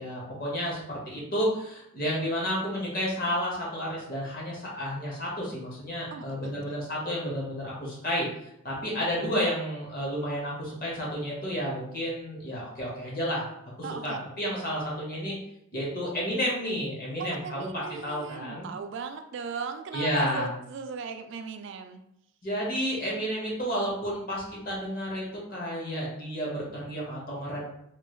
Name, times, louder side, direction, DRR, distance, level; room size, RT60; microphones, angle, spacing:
voice 1, 0.0-13.5 13.8-15.4 15.7-18.7 19.9-20.5 22.4-27.7, equal, 40° left, -4 dB, 1.0 m, -31 dB
voice 2, 6.1-6.6 13.8-14.3 17.2-22.1, right 5 dB, 55° right, 7 dB, 0.3 m, -38 dB
3.1 x 2.3 x 3.1 m, 0.79 s
head